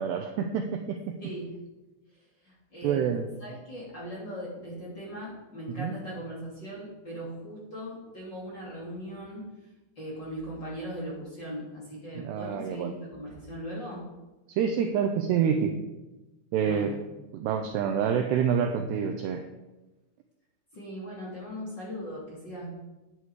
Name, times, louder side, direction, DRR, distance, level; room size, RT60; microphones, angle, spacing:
voice 1, 0.0-1.2 2.8-3.3 5.8-5.9 12.2-12.9 14.6-15.7 16.5-16.9 17.3-19.4, right 7 dB, 85° right, 5 dB, 2.4 m, -27 dB
voice 2, 1.2-1.5 2.2-3.1 3.4-9.5 10.0-14.1 16.6-17.0 20.7-22.7, equal, 30° left, -6 dB, 2.7 m, -39 dB
11.0 x 10.0 x 4.9 m, 1.1 s
omnidirectional pair, 5.8 m